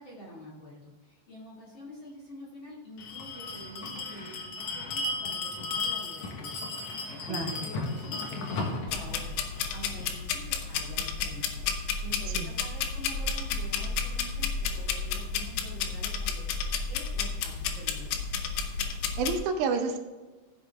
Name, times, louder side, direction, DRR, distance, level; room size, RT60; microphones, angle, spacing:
voice 1, 0.0-6.6 6.8-11.7 12.0-16.4 16.9-18.1, equal, 35° left, -5 dB, 2.4 m, -46 dB
Bell, 3.0-10.2, left 3 dB, 60° left, 1.9 m, -35 dB
voice 2, 7.3-7.6 12.3-12.5 18.8-20.0, right 4 dB, 75° right, 5 dB, 2.3 m, -30 dB
sound 1, 8.9-19.4, left 6 dB, 85° left, 3.2 m, -32 dB
14.0 x 7.3 x 3.5 m, 1.2 s
omnidirectional pair, 5.1 m